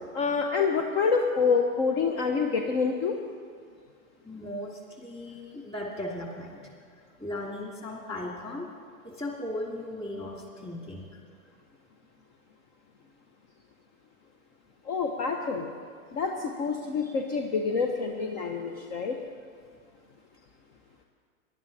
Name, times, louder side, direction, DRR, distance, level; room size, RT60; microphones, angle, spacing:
voice 1, 0.1-3.2 14.9-15.7 16.1-19.2, left 5 dB, 45° left, 3 dB, 1.1 m, -27 dB
voice 2, 4.2-6.7 7.2-8.7 9.0-11.2, left 1 dB, 15° left, 0 dB, 2.5 m, -37 dB
18.0 x 11.0 x 4.2 m, 2.1 s
hypercardioid pair, 105°, 42 cm